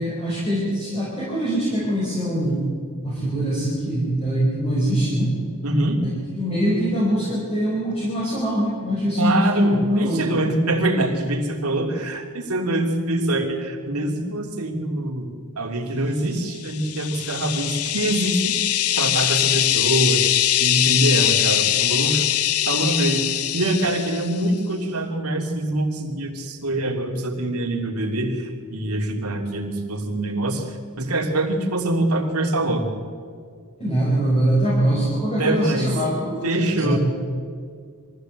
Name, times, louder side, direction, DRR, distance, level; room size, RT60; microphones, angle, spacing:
voice 1, 0.0-2.7 3.0-5.3 6.3-10.4 33.8-37.0, equal, 30° left, -6 dB, 5.2 m, -23 dB
voice 2, 5.6-6.0 9.2-15.3 15.6-18.6 19.0-20.2 20.6-22.3 22.7-23.3 23.5-32.9 35.4-35.9 36.4-37.0, right 1 dB, 90° right, 2 dB, 3.1 m, -24 dB
sound 1, 16.6-24.4, left 13 dB, 85° left, 0.8 m, -22 dB
23.0 x 15.5 x 8.1 m, 2.1 s
head